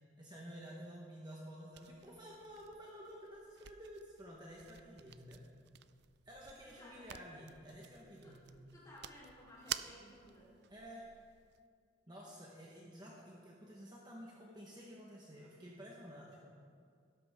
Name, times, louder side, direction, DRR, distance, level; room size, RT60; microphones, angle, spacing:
voice 1, 0.2-5.4 6.2-8.4 10.7-11.1 12.1-16.4, equal, 20° right, -3 dB, 1.3 m, -52 dB
sound 1, 1.7-11.6, right 11 dB, 60° right, 0.4 m, -51 dB
voice 2, 6.7-7.1 8.2-8.4 8.7-10.5, left 1 dB, 20° left, -6 dB, 4.1 m, -57 dB
16.5 x 12.5 x 3.7 m, 2.2 s
head